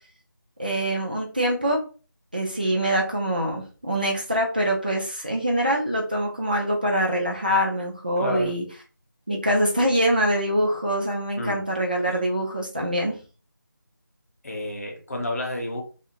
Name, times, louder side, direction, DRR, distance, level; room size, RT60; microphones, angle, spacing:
voice 1, 0.6-1.8 2.3-8.6 9.3-13.1, equal, 25° right, 0.4 m, -24 dB
voice 2, 8.2-8.5 11.4-11.6 14.4-15.8, left 1 dB, 45° left, 0.8 m, -30 dB
2.6 x 2.5 x 2.8 m
figure-of-eight pair, 165°, 11 cm